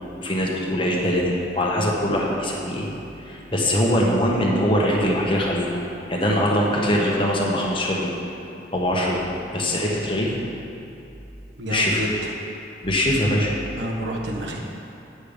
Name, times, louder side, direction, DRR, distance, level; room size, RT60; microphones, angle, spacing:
voice 1, 0.2-2.9 3.2-5.7 6.1-8.1 8.7-9.2 9.5-10.4 11.7-12.0 12.8-13.5, equal, 30° left, -2 dB, 1.1 m, -22 dB
voice 2, 11.5-12.3 13.7-14.6, equal, 75° right, 0 dB, 1.2 m, -29 dB
8.8 x 7.7 x 5.0 m, 2.8 s
head